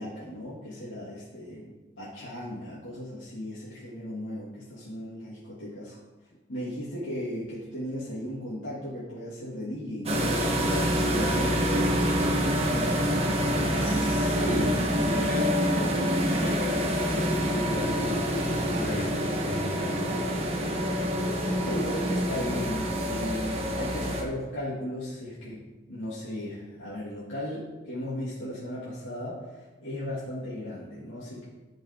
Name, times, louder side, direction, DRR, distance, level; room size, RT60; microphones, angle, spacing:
voice 1, 0.0-1.7 2.0-6.0 6.5-12.9 21.6-25.6 25.9-31.5, left 1 dB, 90° left, -9 dB, 2.5 m, -36 dB
sound 1, 10.1-24.2, equal, 30° right, 1.2 m, -26 dB
voice 2, 11.1-11.6 13.8-20.1, left 1 dB, 45° left, 2 dB, 0.9 m, -35 dB
14.0 x 5.5 x 3.7 m, 1.2 s
head